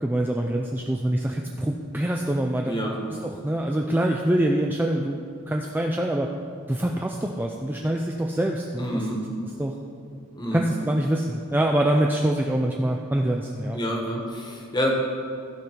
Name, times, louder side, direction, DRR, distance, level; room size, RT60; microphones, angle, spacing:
voice 1, 0.0-2.7 3.2-6.3 6.7-9.0 9.6-9.7 10.5-13.8, right 1 dB, 10° right, 1 dB, 0.3 m, -25 dB
voice 2, 2.6-3.0 8.8-9.2 10.3-10.6 13.7-14.9, equal, 20° left, 0 dB, 1.3 m, -28 dB
15.0 x 5.2 x 4.6 m, 2.4 s
head